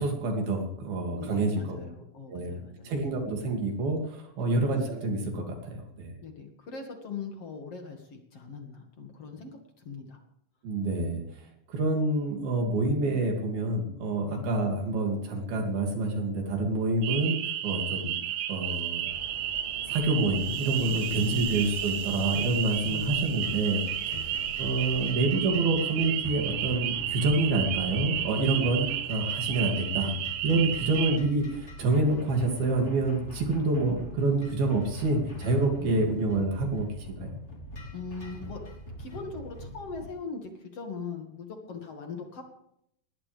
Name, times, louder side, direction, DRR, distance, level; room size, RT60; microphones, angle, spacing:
voice 1, 0.0-1.8 2.3-2.5 2.8-6.1 10.6-11.2 11.7-18.2 18.5-19.1 19.9-24.1 24.6-30.1 30.4-37.3, right 2 dB, 55° right, 2 dB, 4.2 m, -27 dB
voice 2, 1.1-3.0 4.4-4.6 6.2-9.6 9.8-10.2 14.2-14.4 17.9-18.0 22.9-23.2 24.1-24.2 30.8-30.9 35.8-36.1 37.9-38.6 39.0-42.4, left 5 dB, 45° left, 3 dB, 2.1 m, -40 dB
sound 1, 17.0-31.2, right 11 dB, 75° right, 3.3 m, -32 dB
sound 2, 19.1-25.1, left 3 dB, 65° left, 0.4 m, -47 dB
sound 3, 22.9-40.1, equal, 20° left, 2.5 m, -43 dB
20.0 x 18.5 x 3.5 m, 0.73 s
omnidirectional pair, 5.5 m